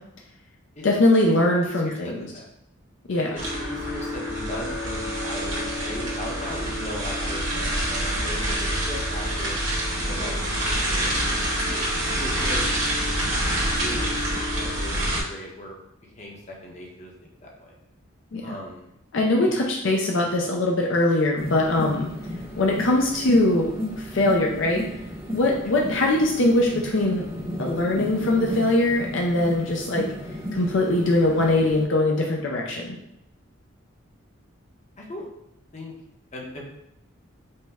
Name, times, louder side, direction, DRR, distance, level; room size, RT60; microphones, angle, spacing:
voice 1, 0.8-2.3 3.1-3.3 18.3-18.4 19.1-22.1 22.6-24.8 25.3-27.2 27.6-30.1 30.5-33.0, left 2 dB, 65° left, 0 dB, 0.5 m, -22 dB
voice 2, 1.6-2.5 3.2-9.6 10.0-11.5 12.2-12.9 13.2-13.3 13.6-14.2 14.5-15.8 16.1-17.1 17.4-17.7 18.4-18.9 19.4-19.6 35.0-35.3 35.7-35.9 36.3-36.6, left 1 dB, 35° left, -1 dB, 0.8 m, -38 dB
Field Recording chimes tarp wind, 3.4-15.2, equal, 65° right, 1.4 m, -26 dB
sound 1, 21.3-31.8, equal, 10° right, 0.7 m, -34 dB
5.4 x 2.1 x 3.4 m, 0.82 s
head